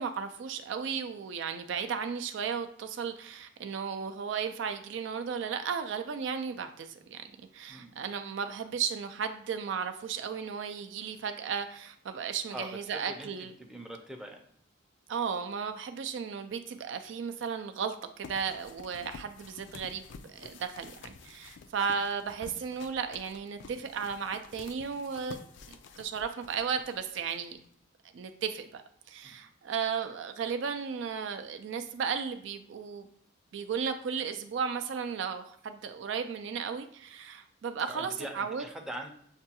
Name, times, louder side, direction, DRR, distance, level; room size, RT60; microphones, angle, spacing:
voice 1, 0.0-7.2 7.5-13.5 15.1-25.4 25.7-27.6 28.1-28.8 29.1-33.1 33.5-38.6, right 6 dB, 65° right, 8 dB, 0.3 m, -35 dB
voice 2, 12.5-14.4 21.4-21.5 29.2-29.3 37.9-39.1, right 1 dB, 5° right, 2 dB, 0.5 m, -43 dB
sound 1, 18.2-27.8, left 4 dB, 65° left, 0.3 m, -50 dB
6.5 x 2.2 x 2.8 m, 0.67 s
head